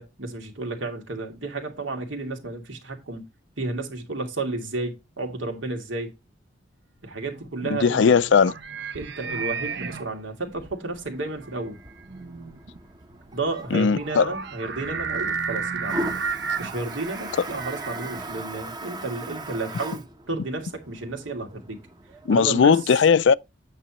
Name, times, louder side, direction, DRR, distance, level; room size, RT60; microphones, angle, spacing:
voice 1, 0.0-3.2 3.6-6.1 7.0-8.2 8.9-11.8 13.3-16.1 16.6-21.8 22.3-22.8, right 2 dB, 80° right, 2.6 m, -32 dB
sound 1, 7.3-18.8, right 5 dB, 60° right, 0.8 m, -33 dB
voice 2, 7.7-8.5 13.7-14.3 22.3-23.3, left 6 dB, 65° left, 0.4 m, -18 dB
Toilet flush, 10.9-22.5, right 1 dB, 20° right, 0.9 m, -39 dB
8.9 x 6.9 x 3.0 m
head